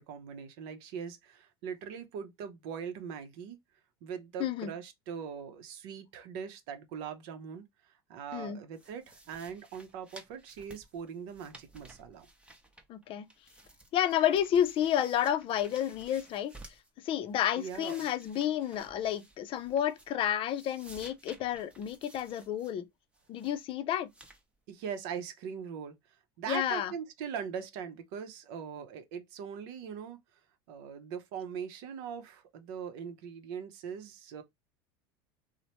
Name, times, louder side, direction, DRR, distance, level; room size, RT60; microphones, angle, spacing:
voice 1, 0.0-3.6 4.0-12.3 17.6-18.0 24.7-25.9 26.4-30.2 30.7-34.4, right 7 dB, 70° right, 0.6 m, -41 dB
voice 2, 4.4-4.7 8.3-8.6 12.9-13.3 13.9-16.5 17.0-22.8 23.3-24.1 26.5-26.9, left 10 dB, 45° left, 0.5 m, -30 dB
sound 1, 8.7-13.0 13.3-16.9 17.3-20.2 20.5-22.7 23.1-23.6 24.1-24.4, right 2 dB, 10° right, 0.7 m, -55 dB
2.9 x 2.0 x 2.8 m
supercardioid pair, 105°, 13 cm